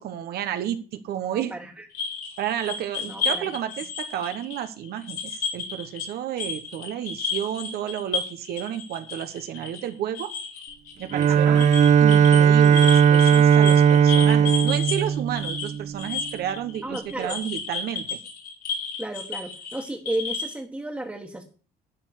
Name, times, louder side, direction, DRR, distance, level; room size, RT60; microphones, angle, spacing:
voice 1, 0.0-1.5 2.4-10.3 11.0-11.6 12.0-18.2, right 10 dB, 70° right, 9 dB, 1.0 m, -31 dB
voice 2, 1.3-1.8 3.0-3.5 11.3-11.7 16.8-17.5 19.0-21.4, right 1 dB, 10° right, 0 dB, 1.6 m, -33 dB
sound 1, 1.9-6.1 6.4-20.6, left 5 dB, 70° left, 3.7 m, -33 dB
Bowed string instrument, 11.1-16.2, right 8 dB, 45° right, 0.5 m, -17 dB
12.0 x 4.6 x 8.1 m, 0.38 s
cardioid pair, 110°, 17 cm